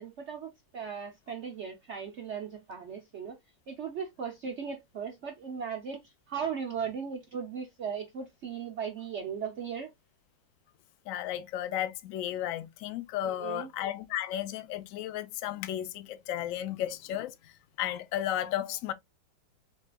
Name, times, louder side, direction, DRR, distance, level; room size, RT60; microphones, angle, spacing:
voice 1, 0.0-3.4 3.7-6.0 6.3-9.9 13.2-13.7, right 7 dB, 80° right, 0.6 m, -37 dB
voice 2, 11.1-18.9, left 12 dB, 70° left, 0.7 m, -34 dB
6.4 x 2.4 x 2.2 m
omnidirectional pair, 2.0 m